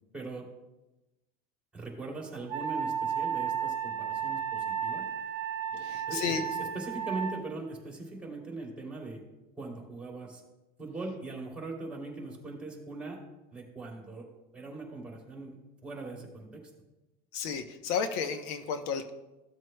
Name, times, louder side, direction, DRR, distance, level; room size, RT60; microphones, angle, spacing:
voice 1, 0.1-0.4 1.7-5.1 5.7-9.2 9.5-10.4 10.8-13.2 13.5-14.2 14.5-16.6, right 3 dB, 5° right, -2 dB, 2.9 m, -40 dB
Wind instrument woodwind instrument, 2.5-7.4, right 8 dB, 45° right, 1.2 m, -33 dB
voice 2, 5.8-6.4 17.3-19.1, left 6 dB, 75° left, 8 dB, 0.8 m, -32 dB
15.0 x 7.6 x 2.2 m, 1.0 s
supercardioid pair, 135°, 19 cm